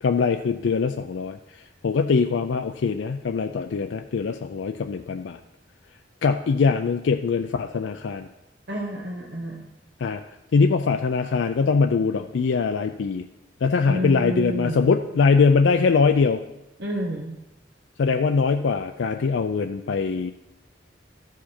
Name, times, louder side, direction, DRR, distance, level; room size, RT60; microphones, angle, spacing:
voice 1, 0.0-1.4 1.8-5.4 6.2-8.3 10.0-10.2 10.5-13.3 13.6-16.4 18.0-20.3, left 5 dB, 75° left, 6 dB, 0.4 m, -22 dB
voice 2, 8.7-9.7 13.9-14.9 16.8-17.3, equal, 65° right, -2 dB, 1.2 m, -29 dB
13.5 x 4.9 x 4.3 m, 0.91 s
head